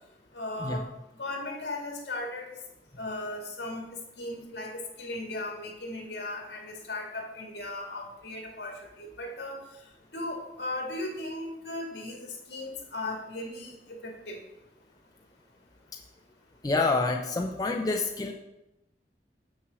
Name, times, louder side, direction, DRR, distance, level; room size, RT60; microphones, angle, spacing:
voice 1, 0.3-0.8 1.2-2.6 3.0-9.6 10.1-14.4, left 2 dB, 65° left, 1 dB, 2.1 m, -37 dB
voice 2, 16.6-18.3, left 3 dB, 20° left, 2 dB, 0.5 m, -27 dB
6.3 x 6.1 x 6.8 m, 0.91 s
head